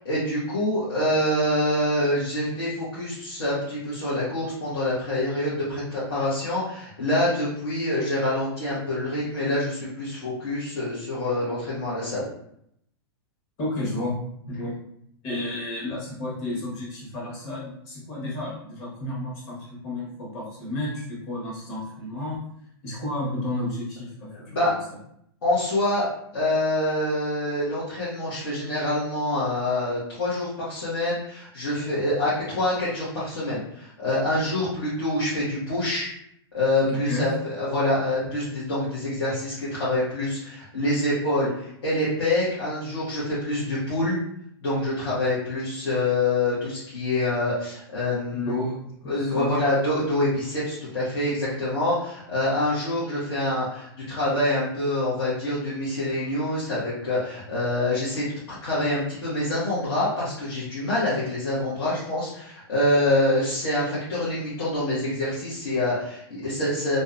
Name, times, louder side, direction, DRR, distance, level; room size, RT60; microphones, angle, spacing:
voice 1, 0.0-12.3 24.5-24.8 25.4-26.1 26.3-36.1 36.5-44.2 44.6-48.5 49.1-58.3 58.6-67.0, left 1 dB, 85° left, -9 dB, 1.1 m, -26 dB
voice 2, 13.6-14.2 14.5-14.8 15.2-22.4 22.8-24.8 36.9-37.3 48.3-49.5, left 1 dB, 45° left, -4 dB, 1.2 m, -32 dB
2.6 x 2.2 x 2.4 m, 0.73 s
hypercardioid pair, 135°, 13 cm